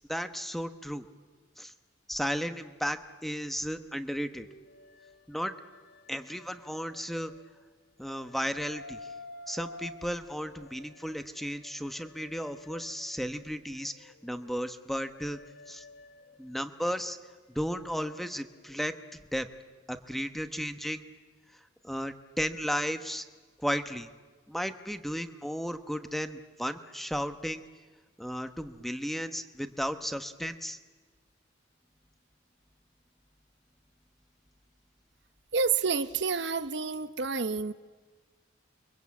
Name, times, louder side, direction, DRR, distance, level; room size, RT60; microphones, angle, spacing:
voice 1, 0.1-1.1 1.6-1.7 2.1-4.5 5.3-5.5 6.1-7.3 8.0-9.0 9.5-15.4 15.7-15.8 16.4-17.2 17.5-19.0 19.3-19.5 19.9-21.0 21.8-23.2 23.6-24.1 24.5-27.6 28.2-30.8, equal, ahead, 8 dB, 1.0 m, -34 dB
sound 1, 4.1-7.7 8.1-13.3 13.8-19.3, left 2 dB, 55° left, 1.7 m, -51 dB
voice 2, 35.5-37.7, right 5 dB, 65° right, 12 dB, 0.9 m, -29 dB
29.5 x 23.5 x 8.5 m, 1.4 s
head